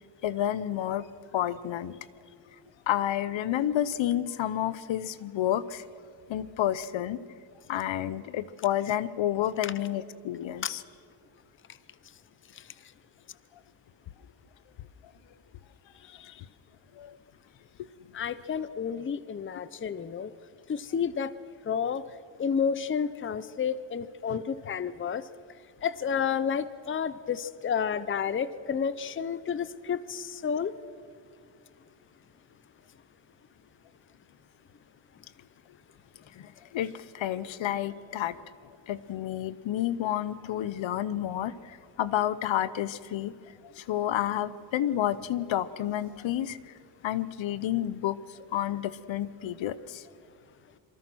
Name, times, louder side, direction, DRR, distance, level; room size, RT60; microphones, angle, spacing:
voice 1, 0.2-1.1 1.3-2.0 2.9-5.8 6.3-7.2 7.7-10.8 17.0-17.2 24.3-24.4 36.4-38.4 38.9-43.3 43.7-46.6 47.0-48.2 48.5-50.0, left 12 dB, 75° left, 16 dB, 0.9 m, -30 dB
voice 2, 18.1-20.3 20.7-21.3 21.7-22.0 22.4-25.2 25.8-30.7, left 7 dB, 25° left, 15 dB, 0.7 m, -30 dB
26.5 x 24.0 x 6.2 m, 2.4 s
cardioid pair, 135°, 46 cm